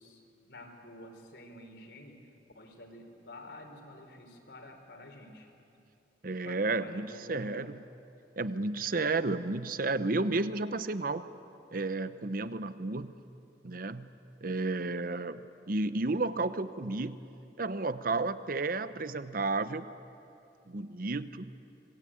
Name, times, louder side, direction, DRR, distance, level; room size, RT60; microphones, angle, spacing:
voice 1, 0.0-2.2 2.5-5.5 6.4-7.8, left 1 dB, 70° left, 3 dB, 3.9 m, -49 dB
voice 2, 6.2-7.8 8.4-11.3 11.7-13.2 13.6-14.1 14.4-15.4 15.7-17.3 17.6-19.9 20.7-21.5, right 3 dB, 50° right, 13 dB, 0.9 m, -32 dB
26.5 x 21.0 x 8.8 m, 2.7 s
head